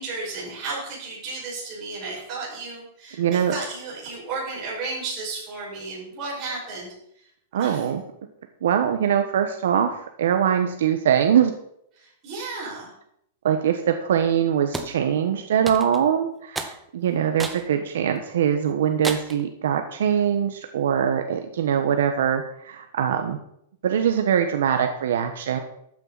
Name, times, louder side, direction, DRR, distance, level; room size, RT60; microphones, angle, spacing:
voice 1, 0.0-7.0 7.6-7.9 12.0-12.9, right 3 dB, 25° right, -5 dB, 5.5 m, -33 dB
voice 2, 3.2-3.5 7.5-8.0 8.6-11.5 13.4-23.4 23.8-25.6, right 8 dB, 75° right, 6 dB, 1.1 m, -22 dB
sound 1, 14.7-15.0 15.7-16.1 16.6-16.8 17.4-17.7 18.2-18.3 19.0-19.4, right 2 dB, 5° right, 0.7 m, -31 dB
13.0 x 9.1 x 4.1 m, 0.72 s
supercardioid pair, 175°, 0 cm